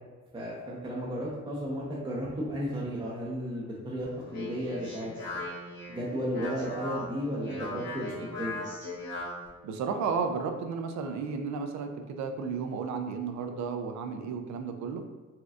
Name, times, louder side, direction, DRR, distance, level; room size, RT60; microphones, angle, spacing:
voice 1, 0.3-5.4 5.9-8.6, equal, 15° right, -5 dB, 0.6 m, -34 dB
Speech, 4.0-9.5, left 2 dB, 80° left, 1.5 m, -39 dB
voice 2, 9.6-15.0, right 5 dB, 70° right, 6 dB, 0.5 m, -33 dB
4.1 x 2.3 x 2.4 m, 1.3 s
cardioid pair, 90°, 30 cm